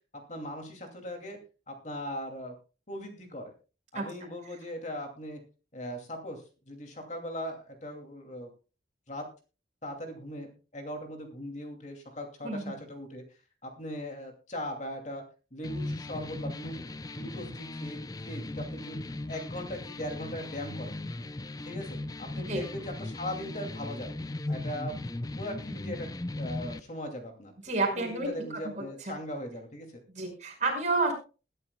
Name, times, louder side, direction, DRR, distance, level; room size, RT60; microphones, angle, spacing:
voice 1, 0.3-1.4 1.7-2.5 2.9-3.5 3.9-5.4 5.7-8.5 9.1-9.3 9.8-13.2 13.6-15.2 15.5-16.8 17.1-18.0 18.2-19.0 19.3-21.0 21.6-24.2 24.5-26.1 26.3-27.5 27.9-29.9, equal, 40° left, 4 dB, 2.6 m, -39 dB
sound 1, 15.6-26.8, left 2 dB, 20° left, 0.5 m, -37 dB
voice 2, 27.6-28.3 28.7-29.2 30.1-31.1, right 3 dB, 40° right, 1 dB, 5.4 m, -30 dB
21.5 x 11.0 x 2.3 m, 0.34 s
head